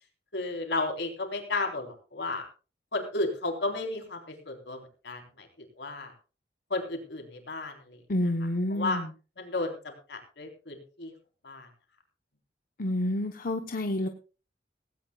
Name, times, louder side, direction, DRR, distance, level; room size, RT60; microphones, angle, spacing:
voice 1, 0.3-2.5 2.9-6.1 6.7-8.0 8.7-9.0 9.4-11.1 11.4-11.7, left 2 dB, 85° left, 3 dB, 4.0 m, -33 dB
voice 2, 8.1-9.1 12.8-14.1, left 1 dB, 55° left, 4 dB, 1.0 m, -29 dB
18.0 x 17.0 x 2.4 m, 0.34 s
head